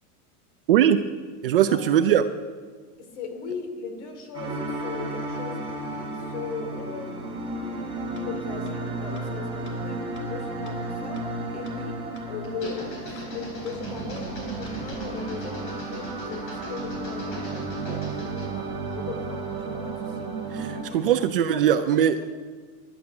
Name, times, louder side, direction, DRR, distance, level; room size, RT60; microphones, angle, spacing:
voice 1, 0.7-1.0 1.4-2.2 20.5-22.2, right 10 dB, 40° right, 9 dB, 0.5 m, -20 dB
voice 2, 3.0-7.4 8.2-11.3 11.5-17.7 18.1-20.3 20.7-21.1 21.5-22.2, left 5 dB, 50° left, 6 dB, 2.9 m, -38 dB
sound 1, 4.3-20.8, right 2 dB, 10° right, 3.4 m, -33 dB
sound 2, 8.2-8.3 8.7-8.8 9.2-9.3 9.7-9.8 10.2-10.3 10.7-10.8 11.2-11.3 11.7-11.8 12.2-12.3 12.7-12.8 13.2-13.3 13.7-13.8 14.2-14.3 14.7-14.8, left 3 dB, 80° left, 3.5 m, -49 dB
sound 3, 12.4-18.6, left 1 dB, 30° left, 4.0 m, -41 dB
20.0 x 11.5 x 5.9 m, 1.5 s
supercardioid pair, 180°, 45 cm